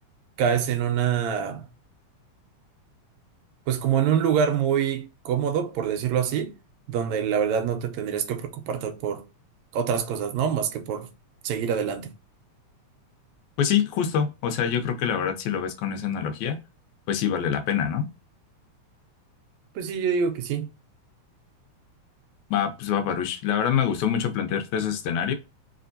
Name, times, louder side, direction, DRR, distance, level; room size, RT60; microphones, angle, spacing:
voice 1, 0.4-1.7 3.7-6.6 6.9-9.3 9.7-11.1 11.4-12.1 19.8-20.7, right 8 dB, 80° right, 1.9 m, -25 dB
voice 2, 13.6-16.6 17.1-18.1 22.5-25.3, left 8 dB, 80° left, 2.0 m, -25 dB
4.3 x 3.4 x 2.6 m
omnidirectional pair, 3.3 m